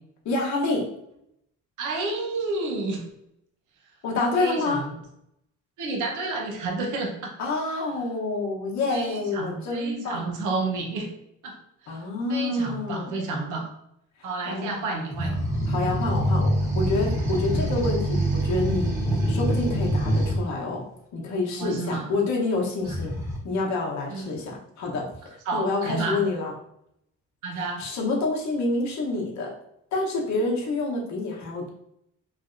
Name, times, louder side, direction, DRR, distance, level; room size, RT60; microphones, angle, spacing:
voice 1, 0.2-0.9 4.0-4.8 7.4-10.3 11.9-13.1 14.5-14.7 15.7-19.0 19.3-20.8 21.1-23.2 23.4-25.1 25.5-26.5 27.8-29.5 29.9-31.7, left 2 dB, 65° left, -1 dB, 1.0 m, -27 dB
voice 2, 1.8-3.0 4.4-4.9 5.8-7.3 8.9-11.1 11.4-11.6 12.3-13.7 14.2-15.4 21.6-22.1 24.1-24.2 25.5-26.2 27.4-27.8, right 3 dB, 80° right, 1 dB, 0.9 m, -30 dB
sound 1, 15.1-20.4 22.8-23.4, right 1 dB, 10° right, 1.2 m, -25 dB
3.2 x 2.6 x 2.5 m, 0.78 s
cardioid pair, 90°, 30 cm